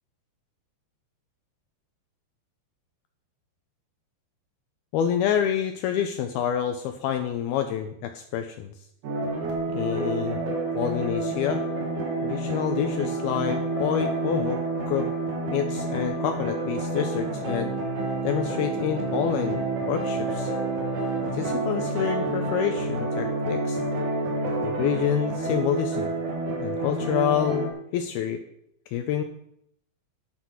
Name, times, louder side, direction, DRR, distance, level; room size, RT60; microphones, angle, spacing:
voice 1, 4.9-8.7 9.7-10.4 10.7-11.6 12.2-14.6 14.9-15.1 15.5-17.7 18.2-20.5 21.2-23.8 24.6-26.1 26.6-28.4 28.9-29.2, left 9 dB, 90° left, 7 dB, 2.2 m, -27 dB
sound 1, 9.0-27.7, right 2 dB, 50° right, 3.2 m, -28 dB
10.0 x 8.4 x 6.3 m, 0.74 s
omnidirectional pair, 5.2 m